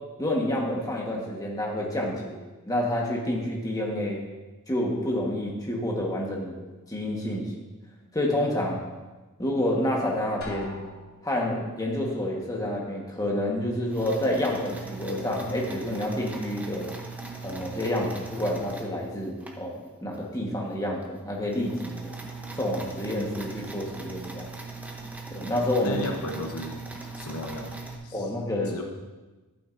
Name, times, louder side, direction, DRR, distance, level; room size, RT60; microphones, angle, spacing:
voice 1, 0.2-2.4 2.7-4.2 4.7-6.6 6.9-7.5 8.1-8.8 9.4-10.8 11.2-16.9 17.4-22.1 22.5-24.5 25.3-26.0 28.1-28.7, left 1 dB, 15° left, -1 dB, 1.3 m, -28 dB
Drum, 10.4-11.6, left 3 dB, 45° left, 1.8 m, -42 dB
sound 1, 13.9-19.6 20.1-20.2 20.7-20.8 21.0-28.0, right 3 dB, 5° right, 0.8 m, -40 dB
voice 2, 25.8-26.8 27.2-28.3 28.7-28.8, left 1 dB, 70° left, 2 dB, 0.9 m, -35 dB
11.5 x 9.0 x 2.6 m, 1.2 s
head